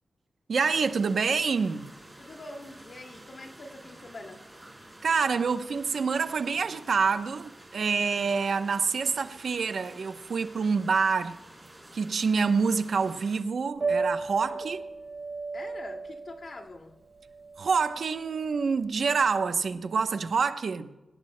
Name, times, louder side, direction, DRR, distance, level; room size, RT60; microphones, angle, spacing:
voice 1, 0.5-1.9 5.0-11.4 11.9-14.8 17.6-20.9, right 5 dB, 60° right, 0.8 m, -27 dB
sound 1, 0.6-13.4, right 1 dB, 10° right, 3.9 m, -50 dB
voice 2, 2.2-4.5 5.3-5.5 14.5-14.7 15.5-17.0, left 2 dB, 45° left, 2.2 m, -44 dB
Piano, 13.7-19.7, right 4 dB, 40° right, 4.2 m, -35 dB
26.5 x 17.5 x 2.2 m
wide cardioid pair, 175°, 0 cm